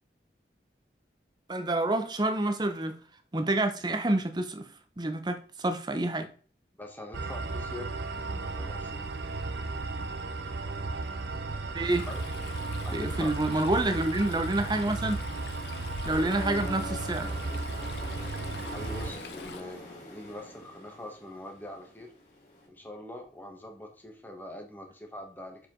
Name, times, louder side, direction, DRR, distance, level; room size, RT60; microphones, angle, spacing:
voice 1, 1.5-2.9 3.3-4.7 5.0-6.3 11.7-12.1 12.9-15.3 16.0-17.3, right 2 dB, 25° right, 0.7 m, -28 dB
voice 2, 6.8-8.0 8.3-9.1 12.1-12.2 12.8-13.7 18.7-22.1 22.7-25.7, left 1 dB, 10° left, 1.2 m, -43 dB
sound 1, 7.1-19.1, right 3 dB, 80° right, 0.7 m, -35 dB
Stream, 11.9-19.6, left 5 dB, 75° left, 0.6 m, -45 dB
sound 2, 16.1-22.7, left 1 dB, 40° left, 2.7 m, -44 dB
6.7 x 4.9 x 3.8 m
head